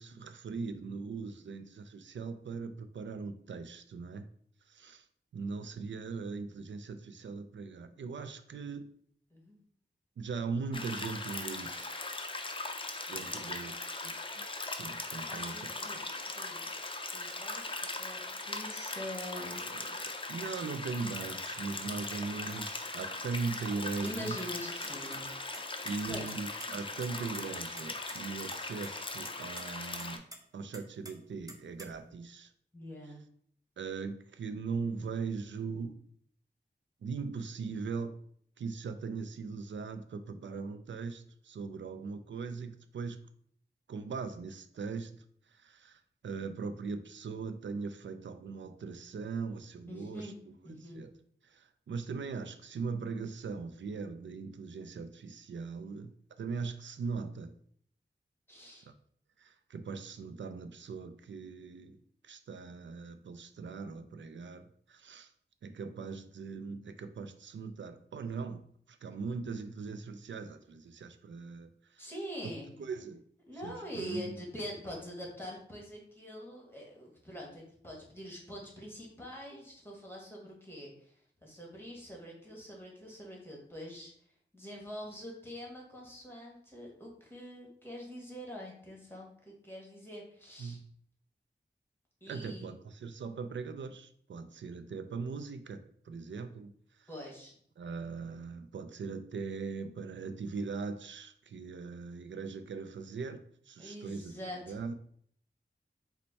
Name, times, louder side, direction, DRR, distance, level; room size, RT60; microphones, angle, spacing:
voice 1, 0.0-4.3 4.7-5.1 5.3-8.9 10.2-12.1 13.1-13.7 14.0-16.2 19.6-19.9 20.3-24.4 25.8-30.3 30.5-32.5 33.8-36.0 37.0-38.2 38.6-43.2 43.9-45.2 45.5-50.3 50.9-51.1 51.4-57.5 58.9-59.0 59.4-62.0 62.2-65.3 65.6-68.6 68.9-72.0 72.8-73.2 73.6-74.3 90.6-90.8 92.3-96.7 97.0-97.1 97.8-104.3 104.7-104.9, right 4 dB, 75° right, 11 dB, 0.4 m, -40 dB
sound 1, 10.7-30.2, left 3 dB, 25° left, 0.5 m, -39 dB
voice 2, 13.3-13.7 15.3-16.7 17.1-19.7 24.0-25.3 26.1-26.3 32.7-33.2 49.9-50.4 50.6-51.0 58.5-58.9 72.0-72.7 73.5-84.1 84.5-90.8 92.2-92.7 97.1-97.5 103.8-104.8, equal, 10° left, -2 dB, 1.5 m, -44 dB
sound 2, 24.1-24.4 24.8-25.2 25.5-26.7 27.0-27.1 27.3-27.4 27.8-28.2 28.5-28.9 29.2-29.6 30.0-30.4 30.7-32.1, right 1 dB, 20° right, 0.7 m, -47 dB
4.3 x 2.2 x 4.0 m, 0.62 s
cardioid pair, 45°, 19 cm